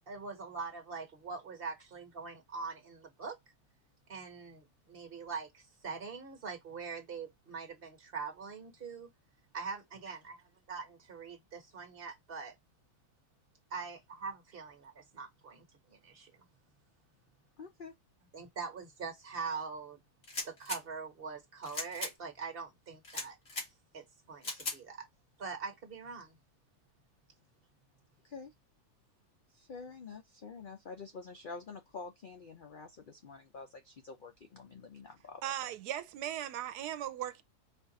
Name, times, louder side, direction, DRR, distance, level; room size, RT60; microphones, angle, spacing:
voice 1, 0.1-3.4 4.1-9.1 9.5-10.4 10.7-12.5 13.7-16.4 18.3-20.0 20.4-23.4 23.9-25.1 25.4-26.4, right 5 dB, 40° right, 1.3 m, -43 dB
voice 2, 17.6-17.9 28.2-28.5 29.5-35.7, left 4 dB, 80° left, 0.4 m, -48 dB
sound 1, 20.2-20.8 21.6-22.1 23.0-23.7 24.4-24.8, left 2 dB, 45° left, 1.9 m, -38 dB
voice 3, 35.4-37.4, right 11 dB, 85° right, 1.1 m, -38 dB
4.4 x 2.4 x 3.9 m
omnidirectional pair, 1.7 m